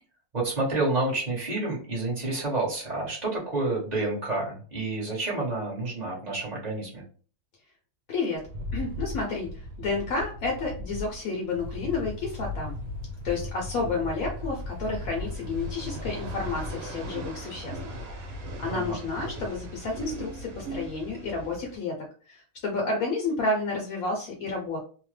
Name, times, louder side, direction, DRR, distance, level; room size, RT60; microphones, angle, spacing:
voice 1, 0.3-7.0 18.7-19.0, right 2 dB, 30° right, -4 dB, 1.0 m, -29 dB
voice 2, 8.1-8.5 8.7-12.8 13.2-17.8 18.1-18.3 18.6-22.0 22.3-24.8, left 3 dB, 70° left, 0 dB, 1.0 m, -30 dB
Rattle, 8.4-16.8, left 1 dB, 90° right, 1.2 m, -39 dB
sound 1, 11.3-21.8, right 1 dB, 70° right, 1.1 m, -41 dB
sound 2, 11.6-16.8, left 2 dB, 55° right, 0.9 m, -39 dB
2.8 x 2.1 x 3.1 m, 0.41 s
omnidirectional pair, 1.6 m